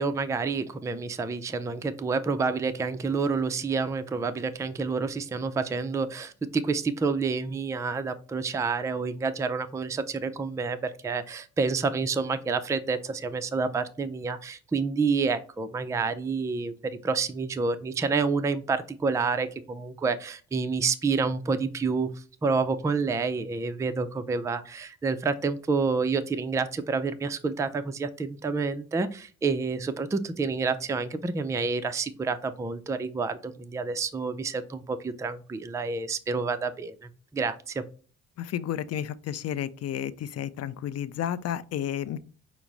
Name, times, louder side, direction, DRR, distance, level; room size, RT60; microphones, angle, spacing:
voice 1, 0.0-16.7 17.0-22.1 22.4-37.8, right 4 dB, 10° right, 0.3 m, -28 dB
voice 2, 38.4-42.2, left 10 dB, 55° left, 0.4 m, -32 dB
5.8 x 2.0 x 3.8 m
cardioid pair, 90°, 30 cm